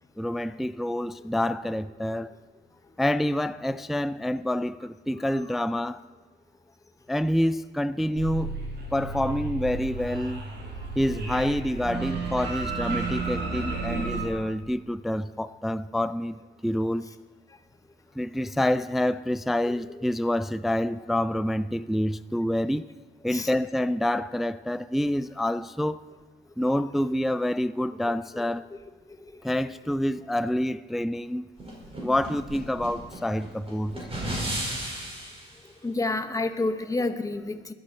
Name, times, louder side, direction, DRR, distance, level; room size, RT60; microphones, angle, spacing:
voice 1, 0.2-2.3 3.0-6.0 7.1-8.5 8.9-10.4 11.0-17.1 18.2-22.9 23.2-26.0 26.6-28.7 29.4-31.5 32.0-34.0, left 1 dB, ahead, 0.3 m, -27 dB
sound 1, 8.2-14.3, right 3 dB, 60° right, 4.1 m, -32 dB
sound 2, 31.6-35.5, right 1 dB, 30° right, 4.9 m, -34 dB
voice 2, 35.8-37.7, left 2 dB, 15° left, 0.9 m, -28 dB
20.5 x 11.5 x 4.3 m
cardioid pair, 90°, 20 cm